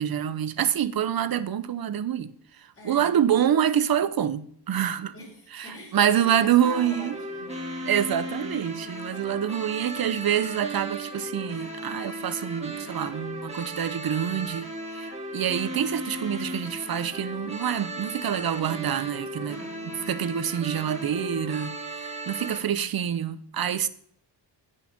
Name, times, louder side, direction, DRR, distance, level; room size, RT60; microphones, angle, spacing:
voice 1, 0.0-5.1 5.5-7.2 7.9-19.6 20.1-23.9, right 9 dB, 55° right, 0.7 m, -26 dB
voice 2, 2.7-3.2 5.1-7.5 7.8-7.9 19.3-20.1 22.4-22.9, equal, 30° left, 4.5 m, -45 dB
sound 1, 6.6-22.6, right 1 dB, 15° right, 2.0 m, -36 dB
16.5 x 5.7 x 5.2 m
wide cardioid pair, 135°, 43 cm